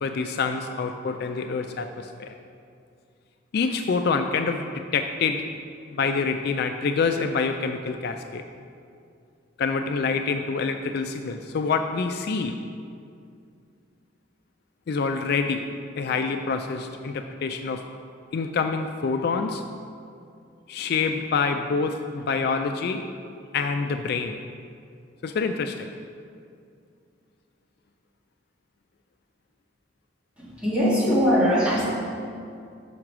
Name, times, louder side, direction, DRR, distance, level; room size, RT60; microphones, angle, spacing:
voice 1, 0.0-2.4 3.5-5.5 5.9-8.4 9.6-12.6 14.9-15.6 16.0-17.8 18.3-19.6 20.7-23.0 23.5-24.3 25.2-25.9, left 4 dB, 55° left, 6 dB, 0.3 m, -26 dB
voice 2, 30.4-31.8, equal, 5° right, -8 dB, 1.8 m, -21 dB
6.3 x 5.7 x 6.0 m, 2.4 s
head